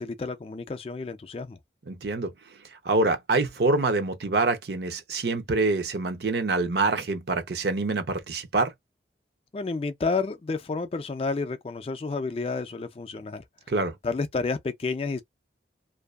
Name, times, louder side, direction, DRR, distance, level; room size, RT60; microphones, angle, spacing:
voice 1, 0.0-1.6 9.5-13.4 14.0-15.2, left 4 dB, 30° left, 0.3 m, -30 dB
voice 2, 1.9-2.3 2.8-8.7 13.7-13.9, right 3 dB, 65° right, 0.7 m, -25 dB
2.6 x 2.3 x 2.3 m
head